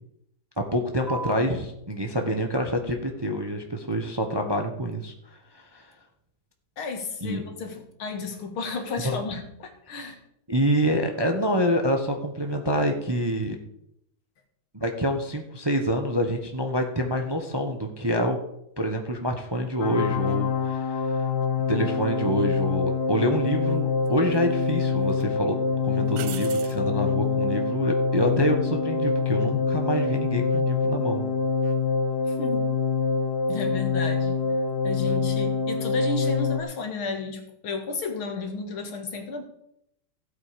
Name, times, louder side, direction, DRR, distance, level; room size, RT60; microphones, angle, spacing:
voice 1, 0.7-5.1 5.5-5.9 7.2-7.4 9.0-9.2 10.5-13.6 14.7-18.4 18.8-21.3 21.7-31.2, equal, 15° right, 3 dB, 1.0 m, -26 dB
sound 1, 1.1-8.1, right 3 dB, 15° left, 0.7 m, -46 dB
voice 2, 6.8-10.2 32.3-32.7 33.5-34.4 34.8-39.4, left 4 dB, 75° left, 4 dB, 2.6 m, -33 dB
sound 2, 19.8-36.6, left 5 dB, 60° left, 1.4 m, -25 dB
sound 3, 22.8-22.9 24.1-24.7 25.1-25.2 26.1-26.8 29.9-30.3, right 12 dB, 70° right, 1.3 m, -40 dB
16.0 x 8.1 x 5.2 m, 0.77 s
omnidirectional pair, 2.3 m